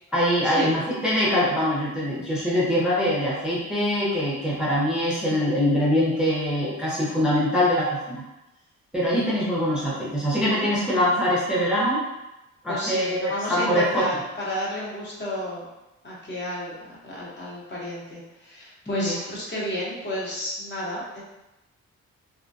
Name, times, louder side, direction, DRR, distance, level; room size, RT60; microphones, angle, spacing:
voice 1, 0.1-8.2 8.9-12.0 12.6-14.0 18.9-19.2, equal, 5° right, -7 dB, 0.5 m, -23 dB
voice 2, 12.7-15.6 16.0-21.2, left 1 dB, 35° left, -5 dB, 0.9 m, -31 dB
2.3 x 2.1 x 2.6 m, 0.95 s
cardioid pair, 90°, 30 cm